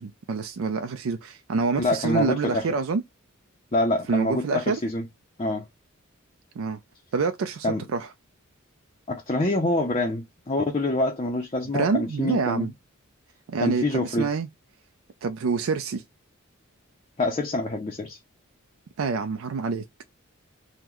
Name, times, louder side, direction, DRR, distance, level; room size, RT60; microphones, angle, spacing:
voice 1, 0.0-3.0 4.1-4.8 6.6-6.8 7.1-8.1 11.7-12.7 13.5-14.5 15.2-16.0 19.0-19.8, right 4 dB, 75° right, 0.4 m, -27 dB
voice 2, 1.8-2.7 3.7-5.1 5.4-5.6 7.6-7.8 9.1-12.7 13.6-14.3 17.2-18.2, left 2 dB, 30° left, 0.5 m, -26 dB
3.7 x 2.1 x 2.9 m
head